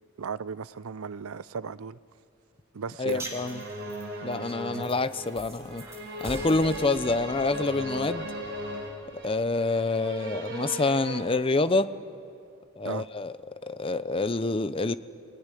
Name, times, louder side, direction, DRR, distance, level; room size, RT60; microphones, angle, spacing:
voice 1, 0.2-2.0 2.7-3.3 4.7-4.9 12.8-13.1, right 5 dB, 80° right, 0.5 m, -36 dB
voice 2, 3.0-3.6 4.2-5.8 6.2-8.3 9.2-11.9 12.8-13.3 13.6-15.0, left 3 dB, 25° left, 0.6 m, -27 dB
sound 1, 3.1-9.4, right 1 dB, 15° right, 3.4 m, -45 dB
sound 2, 3.3-11.2, equal, 55° right, 3.9 m, -37 dB
27.0 x 19.0 x 9.9 m
head